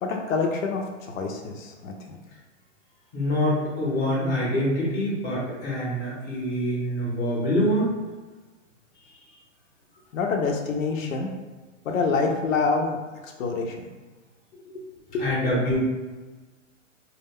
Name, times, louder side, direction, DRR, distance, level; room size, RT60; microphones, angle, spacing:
voice 1, 0.0-2.2 10.1-11.3 11.8-13.0 13.2-13.8 14.7-14.8 15.1-15.3, left 4 dB, 80° left, 2 dB, 0.6 m, -26 dB
voice 2, 3.1-7.8 15.2-15.8, equal, 20° left, -6 dB, 0.7 m, -25 dB
2.2 x 2.2 x 3.4 m, 1.3 s
hypercardioid pair, 155°, 38 cm